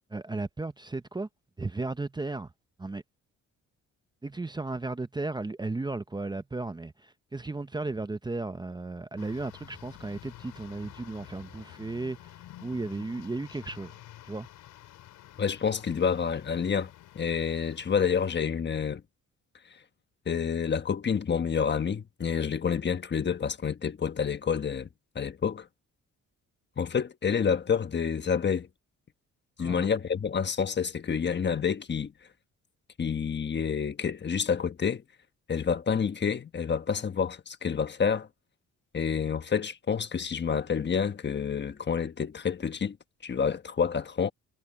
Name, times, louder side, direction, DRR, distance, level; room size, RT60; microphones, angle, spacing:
voice 1, 0.1-1.3 1.6-2.5 2.8-3.0 4.2-14.0 14.2-14.5 29.6-29.9, right 3 dB, 15° right, 0.8 m, -35 dB
sound 1, 9.2-18.4, left 14 dB, 85° left, 5.0 m, -50 dB
voice 2, 15.4-19.0 20.3-24.9 25.1-25.7 26.8-28.7 29.6-32.1 33.0-35.0 35.5-38.3 38.9-43.0 43.2-44.3, left 6 dB, 35° left, 1.3 m, -28 dB
cardioid pair, 90°, 30 cm